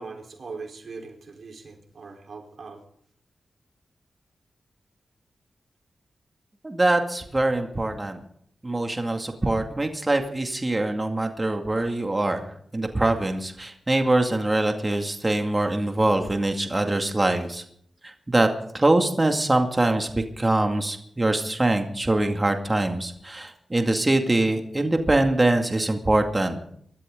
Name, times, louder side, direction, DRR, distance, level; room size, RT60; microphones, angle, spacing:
voice 1, 0.0-2.8, right 4 dB, 65° right, 2 dB, 4.1 m, -40 dB
voice 2, 6.6-8.2 8.6-17.6 18.0-18.5 18.7-26.7, right 2 dB, 25° right, 4 dB, 2.3 m, -23 dB
23.5 x 13.0 x 3.9 m, 0.66 s
cardioid pair, 55°, 0 cm